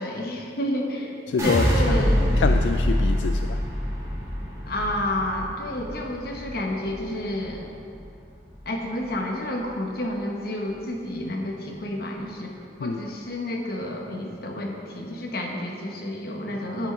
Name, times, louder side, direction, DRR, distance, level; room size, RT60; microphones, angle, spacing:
voice 1, 0.0-1.2 1.4-2.2 4.7-7.7 8.6-12.5 12.8-16.9, left 1 dB, 60° left, 0 dB, 1.2 m, -30 dB
voice 2, 1.3-2.0 2.4-3.6 12.8-13.0, left 5 dB, 85° left, 6 dB, 0.3 m, -26 dB
sound 1, 1.4-7.6 7.9-8.5, equal, 20° right, 1.6 m, -25 dB
9.0 x 6.2 x 5.6 m, 2.5 s
head